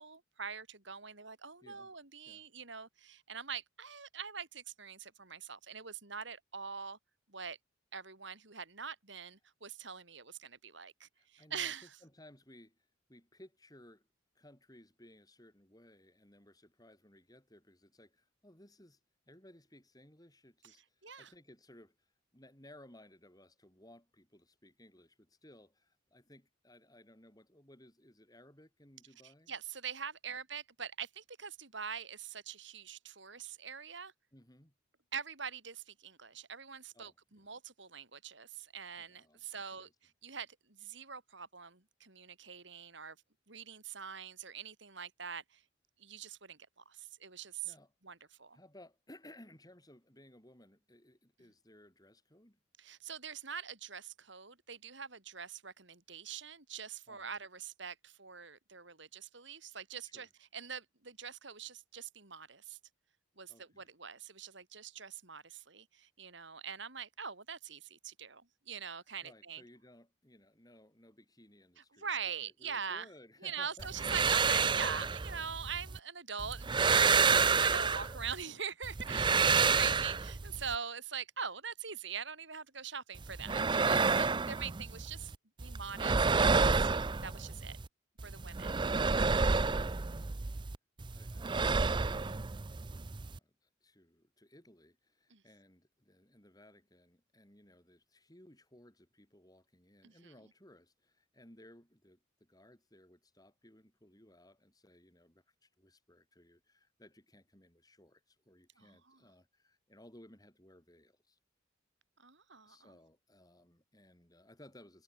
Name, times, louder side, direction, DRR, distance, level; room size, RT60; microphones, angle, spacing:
voice 1, 0.0-7.0 7.3-7.6 7.9-12.0 21.0-21.3 29.2-34.1 35.1-43.2 43.5-45.6 46.0-47.7 48.0-48.6 52.8-62.8 63.4-69.6 71.9-73.1 73.4-85.3 85.6-86.9 87.2-87.8 88.2-88.8 95.3-95.4 100.0-100.3 108.8-109.2 112.2-113.0, right 7 dB, 60° right, 3.5 m, -43 dB
voice 2, 1.6-1.9 2.3-2.5 11.1-14.1 14.3-19.0 19.3-29.5 30.3-30.4 34.3-34.7 36.9-37.5 39.0-39.9 47.4-47.9 48.5-52.6 57.1-57.4 60.0-60.3 63.5-63.9 69.2-72.1 72.4-73.9 89.2-90.4 91.1-92.5 92.9-111.4 112.7-115.0, left 1 dB, 20° left, 6.4 m, -60 dB
sound 1, 73.8-76.0 76.4-78.4 78.8-80.7 83.1-85.3 85.6-87.9 88.2-90.7 91.0-93.4, right 5 dB, 25° right, 0.5 m, -30 dB
head